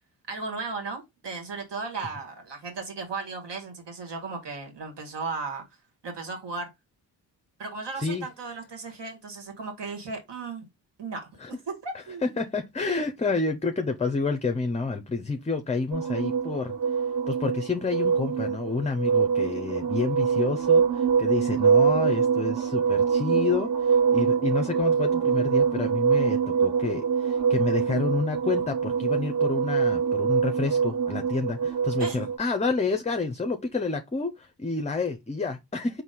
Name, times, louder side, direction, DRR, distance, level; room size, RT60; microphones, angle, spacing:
voice 1, 0.3-5.6 6.0-6.7 7.6-10.7 11.0-12.4 32.0-32.2, right 4 dB, 70° right, 1.8 m, -36 dB
voice 2, 8.0-8.3 11.4-11.5 12.2-36.0, left 4 dB, 15° left, 0.5 m, -29 dB
sound 1, 15.9-32.4, right 6 dB, 50° right, 1.4 m, -24 dB
4.1 x 2.7 x 3.8 m
cardioid pair, 50°, 44 cm